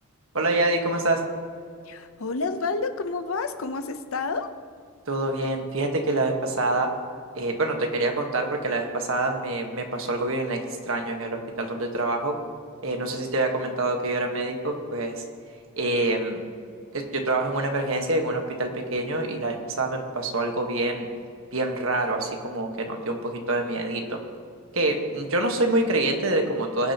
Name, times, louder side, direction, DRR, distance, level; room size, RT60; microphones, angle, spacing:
voice 1, 0.3-1.2 5.1-6.9 7.3-10.6 10.9-12.3 12.8-15.1 15.8-16.4 16.9-21.1 21.5-24.2 24.7-26.9, right 2 dB, 65° right, 3 dB, 1.4 m, -26 dB
voice 2, 1.9-4.5, left 4 dB, 70° left, 9 dB, 0.7 m, -29 dB
20.5 x 8.6 x 2.9 m, 2.3 s
head